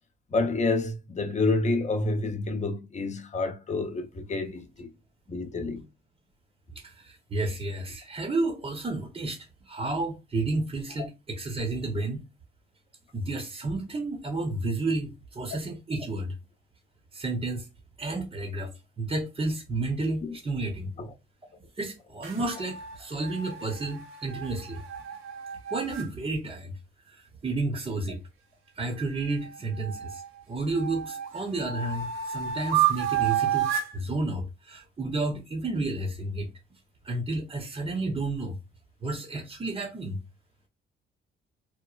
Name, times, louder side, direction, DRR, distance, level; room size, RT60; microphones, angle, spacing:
voice 1, 0.3-4.9 5.3-5.8 20.2-20.4 21.0-21.1, left 3 dB, 35° left, 0.8 m, -28 dB
voice 2, 6.7-12.2 13.1-16.3 17.1-17.7 18.0-20.9 21.8-24.8 25.7-26.7 27.0-28.2 28.7-30.2 30.5-36.5 37.0-38.6 39.0-40.2, right 2 dB, 30° right, 0.8 m, -31 dB
sound 1, 22.2-26.1 29.0-30.3 30.8-34.0, right 10 dB, 90° right, 0.8 m, -31 dB
3.0 x 2.0 x 2.3 m
cardioid pair, 90°, 20 cm